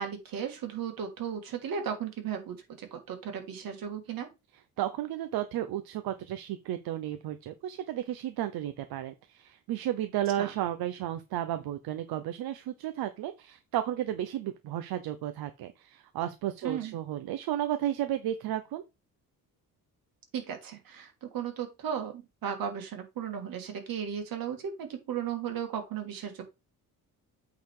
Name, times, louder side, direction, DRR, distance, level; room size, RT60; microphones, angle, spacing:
voice 1, 0.0-4.3 10.4-10.5 16.6-17.0 20.3-26.4, right 8 dB, 70° right, 2.5 m, -35 dB
voice 2, 4.8-18.8, right 12 dB, 85° right, 0.9 m, -33 dB
8.5 x 4.1 x 4.8 m
cardioid pair, 135°, 36 cm